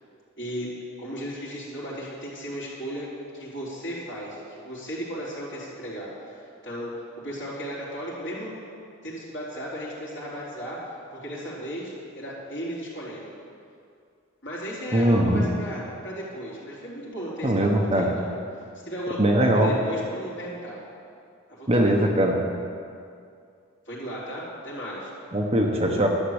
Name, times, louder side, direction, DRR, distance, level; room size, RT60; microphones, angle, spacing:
voice 1, 0.4-0.7 1.0-3.1 3.3-6.4 6.6-6.9 7.2-8.5 9.0-10.8 11.1-13.3 14.4-17.5 17.9-18.3 18.8-20.8 21.6-21.9 23.9-25.1, equal, 55° left, -7 dB, 3.6 m, -35 dB
voice 2, 14.9-15.5 17.4-18.1 19.2-19.7 21.7-22.4 25.3-26.1, right 1 dB, 25° right, 0 dB, 1.0 m, -21 dB
11.5 x 7.3 x 8.1 m, 2.3 s
head